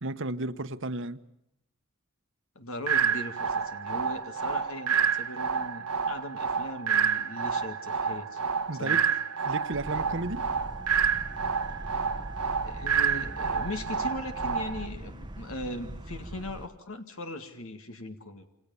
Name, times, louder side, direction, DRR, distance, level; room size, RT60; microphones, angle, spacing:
voice 1, 0.0-1.2 8.7-9.1 9.5-10.5, right 2 dB, 55° right, 1.2 m, -33 dB
voice 2, 2.6-8.4 8.7-9.1 12.0-12.1 12.6-18.5, left 1 dB, 70° left, 2.0 m, -39 dB
sound 1, 2.9-14.9, right 6 dB, 90° right, 1.3 m, -29 dB
sound 2, 9.7-16.7, right 1 dB, 20° right, 1.0 m, -41 dB
28.0 x 27.5 x 7.1 m
head